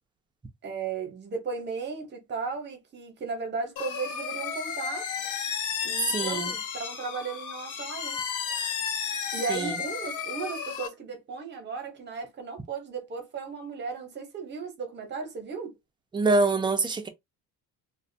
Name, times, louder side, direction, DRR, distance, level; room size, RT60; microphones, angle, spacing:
voice 1, 0.6-5.1 5.8-8.7 9.3-15.8, right 5 dB, 30° right, 0.8 m, -36 dB
sound 1, 3.8-10.9, left 7 dB, 60° left, 0.7 m, -33 dB
voice 2, 6.1-6.5 9.5-9.7 16.1-17.1, right 3 dB, 15° right, 0.3 m, -25 dB
2.3 x 2.1 x 2.6 m
cardioid pair, 135°, 34 cm